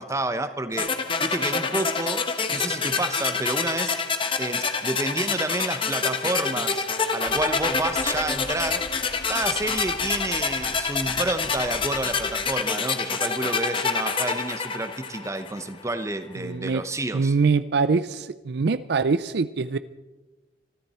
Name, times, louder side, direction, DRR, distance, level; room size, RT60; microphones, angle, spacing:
voice 1, 0.0-3.9 4.4-6.8 7.1-8.9 9.3-17.3, right 2 dB, 15° right, 10 dB, 0.9 m, -29 dB
sound 1, 0.8-15.7, left 5 dB, 30° left, 1.1 m, -27 dB
sound 2, 7.2-12.6, left 1 dB, 55° left, 0.8 m, -45 dB
voice 2, 16.4-16.8 17.1-19.8, right 4 dB, 60° right, 14 dB, 0.5 m, -23 dB
24.0 x 13.5 x 4.3 m, 1.1 s
head